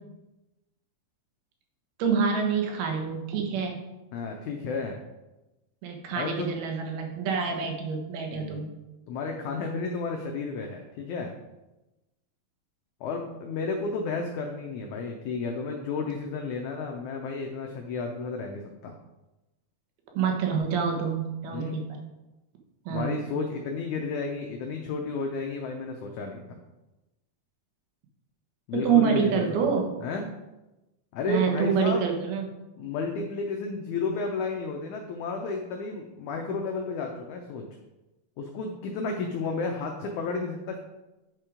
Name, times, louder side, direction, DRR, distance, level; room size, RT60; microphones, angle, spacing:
voice 1, 2.0-3.8 5.8-8.7 20.2-22.0 22.9-23.2 28.7-29.9 31.3-32.5, right 6 dB, 80° right, 2 dB, 3.1 m, -26 dB
voice 2, 4.1-5.0 6.2-6.5 7.3-7.4 8.3-8.7 9.1-11.4 13.0-18.9 21.5-21.8 22.9-26.6 28.7-29.7 30.0-30.3 31.1-32.1 32.8-37.7 38.4-40.8, left 4 dB, 90° left, 2 dB, 1.7 m, -32 dB
8.9 x 4.5 x 5.0 m, 1.0 s
omnidirectional pair, 4.4 m